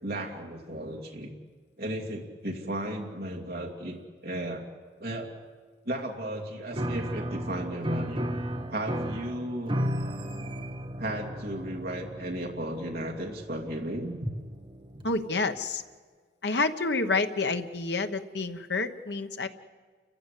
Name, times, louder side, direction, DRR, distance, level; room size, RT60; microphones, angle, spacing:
voice 1, 0.0-1.3 1.8-4.7 5.0-5.3 5.9-8.3 8.7-9.8 11.0-14.3, right 1 dB, 55° right, 0 dB, 2.5 m, -35 dB
Piano, 6.7-15.2, equal, 30° right, 1.2 m, -35 dB
voice 2, 15.0-15.8 16.4-19.5, left 3 dB, 75° left, 8 dB, 1.2 m, -28 dB
29.5 x 15.0 x 8.4 m, 1.5 s
head